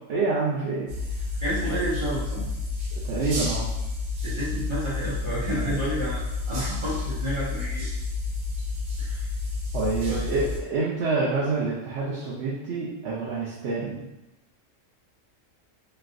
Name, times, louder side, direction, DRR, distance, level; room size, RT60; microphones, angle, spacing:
voice 1, 0.1-0.9 3.0-3.7 9.7-14.1, right 3 dB, 65° right, -7 dB, 0.8 m, -27 dB
sound 1, 0.9-10.6, left 3 dB, 85° right, 1.1 m, -30 dB
voice 2, 1.4-2.5 4.2-6.2 6.5-7.9 9.0-9.3 10.1-10.4, right 1 dB, 45° right, -9 dB, 0.3 m, -30 dB
3.1 x 2.6 x 2.4 m, 0.96 s
omnidirectional pair, 1.3 m